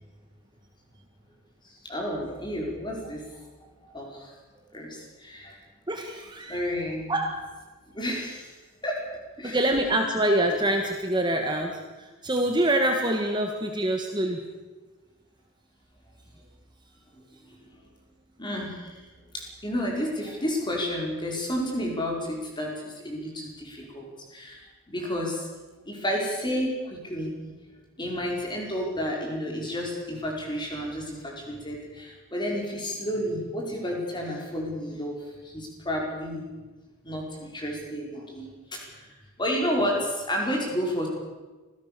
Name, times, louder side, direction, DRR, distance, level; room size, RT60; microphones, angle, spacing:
voice 1, 1.8-3.4 3.8-4.3 4.7-5.6 6.5-7.1 7.9-8.5 8.8-9.1 9.4-9.7 17.5-17.6 18.4-18.9 19.3-25.5 25.8-27.6 28.0-36.5 37.0-39.1 39.4-41.1, equal, 20° left, 0 dB, 5.1 m, -31 dB
voice 2, 5.9-6.7 7.1-7.4 9.4-14.4, right 1 dB, 20° right, 3 dB, 1.7 m, -25 dB
26.0 x 17.0 x 6.9 m, 1.2 s
head